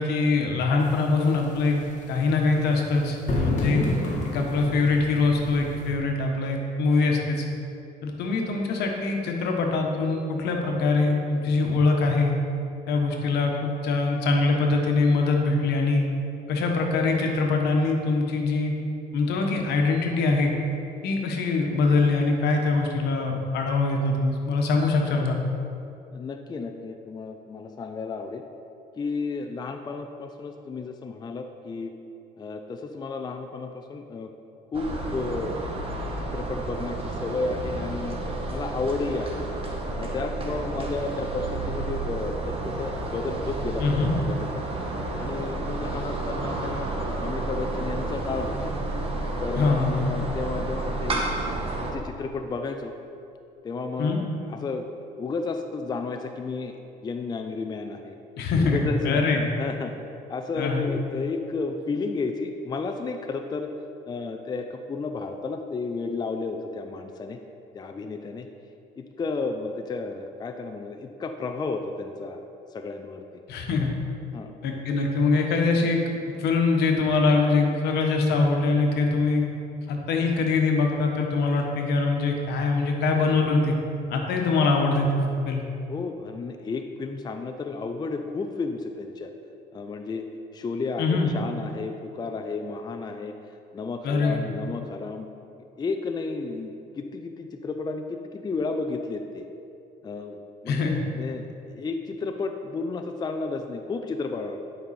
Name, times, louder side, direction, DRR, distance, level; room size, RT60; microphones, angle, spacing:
voice 1, 0.0-1.8 2.1-3.9 4.2-7.4 8.0-12.3 12.9-16.1 16.5-18.7 19.1-20.5 21.0-25.4 43.8-44.1 49.5-49.9 54.0-54.2 58.4-59.5 60.6-60.8 73.5-73.9 74.6-76.1 76.4-79.4 79.9-83.7 84.1-85.6 91.0-91.3 94.0-94.4 100.7-100.9, left 3 dB, 75° left, 2 dB, 1.2 m, -23 dB
sound 1, 0.8-5.9, left 2 dB, 45° left, 1.8 m, -31 dB
voice 2, 26.1-28.4 28.9-31.9 32.4-34.3 34.7-35.6 36.2-38.2 38.5-39.4 40.0-44.6 45.2-46.9 47.2-48.7 49.4-51.2 51.8-52.9 53.6-54.9 55.2-58.2 58.6-59.2 59.6-59.9 60.3-63.7 64.1-67.4 67.7-68.5 69.0-72.4 72.7-73.2 74.3-74.8 85.9-89.3 89.7-90.3 90.5-93.3 93.7-95.3 95.8-99.5 100.0-101.4 101.7-104.6, left 4 dB, 25° left, 6 dB, 0.5 m, -32 dB
sound 2, 34.7-51.9, right 2 dB, 35° right, 1.2 m, -31 dB
10.5 x 5.3 x 4.2 m, 2.7 s
cardioid pair, 110°, 17 cm